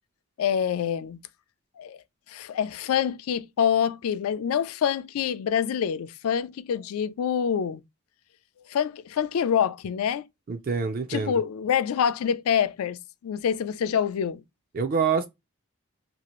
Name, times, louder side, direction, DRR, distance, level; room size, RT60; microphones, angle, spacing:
voice 1, 0.4-1.2 1.8-2.0 2.3-7.8 8.7-10.2 11.1-14.4, left 8 dB, 75° left, 0.3 m, -26 dB
voice 2, 10.5-11.3 14.7-15.3, right 5 dB, 40° right, 0.3 m, -26 dB
2.8 x 2.4 x 2.9 m
head